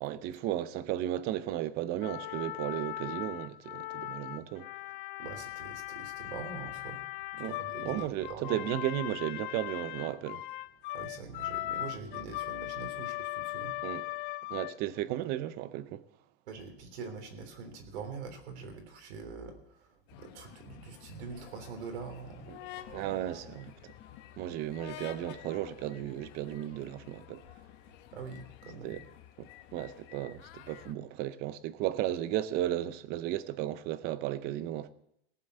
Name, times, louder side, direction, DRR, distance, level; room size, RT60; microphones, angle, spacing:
voice 1, 0.0-4.7 7.4-7.6 7.8-10.4 13.8-14.0 14.5-16.0 22.5-22.6 22.9-23.9 24.4-27.4 28.8-29.0 29.4-34.9, right 13 dB, 30° right, 0.6 m, -34 dB
sound 1, 2.0-15.0, left 16 dB, 50° left, 0.5 m, -39 dB
voice 2, 5.2-7.0 7.4-8.6 10.9-13.7 16.5-23.4 28.1-29.0, right 5 dB, 80° right, 3.4 m, -44 dB
sound 2, 20.1-30.9, left 12 dB, 35° left, 0.9 m, -50 dB
17.5 x 7.7 x 6.6 m
supercardioid pair, 160°, 33 cm